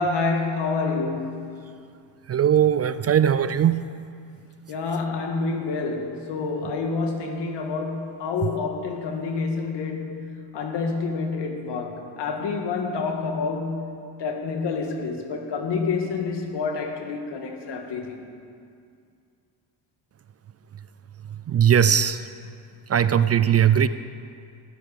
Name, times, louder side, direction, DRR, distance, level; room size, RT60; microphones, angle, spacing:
voice 1, 0.0-1.5 4.7-13.9 14.2-18.3, left 4 dB, 70° left, 4 dB, 1.8 m, -28 dB
voice 2, 2.3-3.8 21.5-22.2 22.9-23.9, right 9 dB, 35° right, 13 dB, 0.4 m, -19 dB
13.5 x 10.5 x 5.1 m, 2.3 s
cardioid pair, 80°, 44 cm